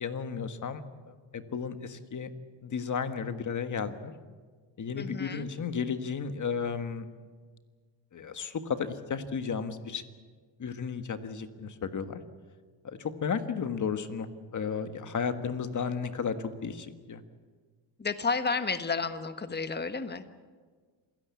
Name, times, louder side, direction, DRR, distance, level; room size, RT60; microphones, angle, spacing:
voice 1, 0.0-2.3 2.6-4.1 4.8-7.0 8.1-10.0 10.6-12.2 12.8-17.2, left 6 dB, 40° left, 9 dB, 1.6 m, -33 dB
voice 2, 4.9-5.5 18.0-20.3, left 4 dB, 20° left, 10 dB, 1.4 m, -31 dB
27.5 x 17.0 x 8.4 m, 1.5 s
cardioid pair, 120°, 46 cm